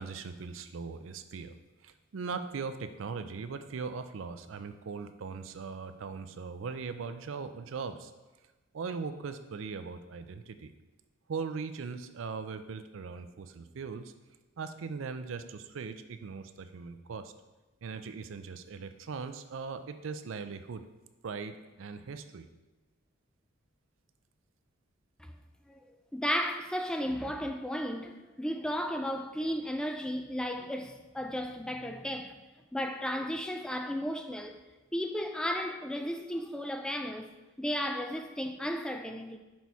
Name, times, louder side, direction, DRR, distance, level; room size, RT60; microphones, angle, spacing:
voice 1, 0.0-1.5 1.8-8.1 8.7-10.7 11.3-14.1 14.6-17.3 17.8-20.8 21.2-22.5, right 5 dB, 70° right, 0.4 m, -39 dB
voice 2, 26.1-32.4 32.7-34.6 34.9-37.3 37.6-39.4, equal, 5° left, 0.3 m, -34 dB
6.1 x 4.1 x 4.6 m
head